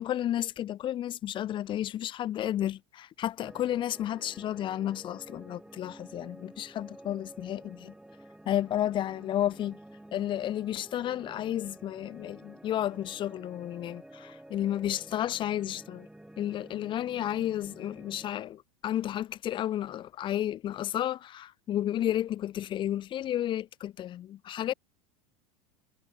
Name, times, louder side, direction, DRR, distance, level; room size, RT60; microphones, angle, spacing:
voice 1, 0.0-7.9 8.5-9.8 10.1-16.1 16.4-24.7, left 12 dB, 30° left, 0.4 m, -32 dB
sound 1, 3.4-18.3, right 1 dB, 5° right, 5.8 m, -51 dB
hypercardioid pair, 90°, 18 cm